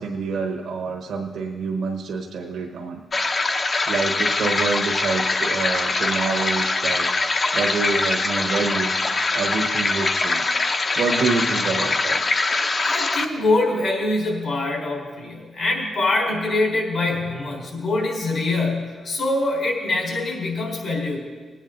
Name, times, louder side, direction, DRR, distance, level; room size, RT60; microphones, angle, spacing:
voice 1, 0.0-3.0 3.9-8.9 9.3-10.6 11.0-12.2, right 4 dB, 80° right, 1 dB, 1.1 m, -27 dB
sound 1, 3.1-13.3, left 3 dB, 45° left, 0.9 m, -23 dB
voice 2, 12.8-21.2, left 2 dB, 65° left, -1 dB, 4.3 m, -24 dB
19.5 x 9.2 x 3.9 m, 1.4 s
cardioid pair, 65°, 0 cm